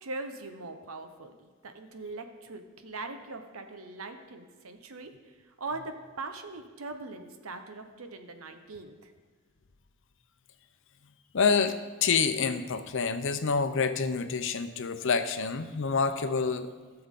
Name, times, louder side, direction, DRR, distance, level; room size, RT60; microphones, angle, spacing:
voice 1, 0.0-9.1, right 3 dB, 85° right, 7 dB, 0.9 m, -41 dB
voice 2, 11.3-16.7, left 5 dB, 60° left, 9 dB, 0.6 m, -27 dB
16.5 x 6.9 x 3.7 m, 1.4 s
head